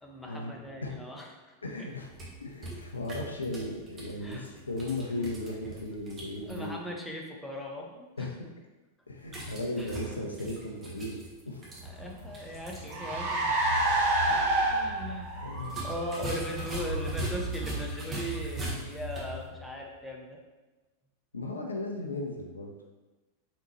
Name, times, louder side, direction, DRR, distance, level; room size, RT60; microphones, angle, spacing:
voice 1, 0.0-1.9 2.7-2.8 4.2-4.5 6.5-8.3 9.8-9.9 11.8-13.5 14.4-15.5 15.8-20.4, equal, 5° left, -1 dB, 0.7 m, -39 dB
voice 2, 1.6-2.1 2.4-6.8 8.2-8.5 9.1-11.2 11.5-11.6 14.3-14.5 15.4-15.8 21.3-22.7, left 2 dB, 75° left, 2 dB, 0.5 m, -36 dB
sound 1, 1.9-6.7 9.2-13.0 13.3-13.4 15.6-19.4, right 2 dB, 20° right, 1.1 m, -42 dB
Car, 11.8-19.6, right 2 dB, 50° right, 0.9 m, -31 dB
4.3 x 3.8 x 3.0 m, 1.1 s
figure-of-eight pair, 90°, 0 cm